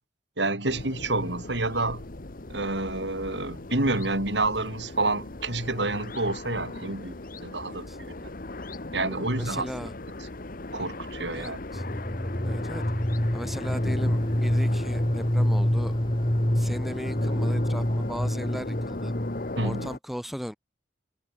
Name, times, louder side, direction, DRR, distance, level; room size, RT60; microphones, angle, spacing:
voice 1, 0.4-2.1 2.5-7.9 8.2-8.3 8.9-9.7 10.7-11.6 19.6-19.9, right 2 dB, 70° right, 5.2 m, -28 dB
sound 1, 0.7-20.0, left 2 dB, 50° left, 1.4 m, -38 dB
voice 2, 9.1-9.9 11.3-11.8 12.4-12.8 13.3-16.0 16.5-19.1 19.6-20.5, equal, ahead, 2.8 m, -37 dB
sound 2, 11.7-19.6, equal, 25° left, 1.9 m, -26 dB
head